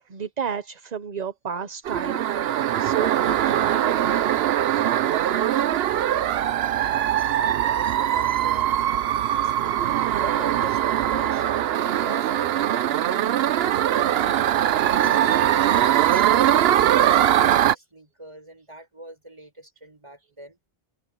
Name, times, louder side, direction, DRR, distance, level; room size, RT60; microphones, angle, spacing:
voice 1, 0.1-2.3 2.8-3.9, right 7 dB, 45° right, 0.9 m, -32 dB
sound 1, 1.9-17.8, right 11 dB, 75° right, 0.8 m, -21 dB
voice 2, 5.2-8.8 9.2-11.5 11.8-20.6, equal, 30° right, 6.5 m, -44 dB
omnidirectional pair, 1.0 m